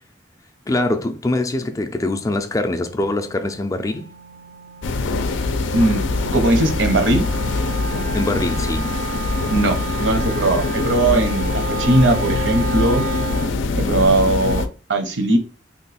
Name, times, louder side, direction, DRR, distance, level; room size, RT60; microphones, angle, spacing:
voice 1, 0.7-4.1 8.1-9.1, left 2 dB, 15° left, 0.3 m, -23 dB
Wind instrument woodwind instrument, 2.0-13.6, right 3 dB, 50° right, 0.4 m, -32 dB
sound 1, 4.8-14.7, left 3 dB, 85° left, 0.4 m, -23 dB
voice 2, 6.3-7.3 9.5-13.1 13.7-15.4, right 2 dB, 80° right, 0.8 m, -19 dB
3.0 x 2.3 x 4.0 m
head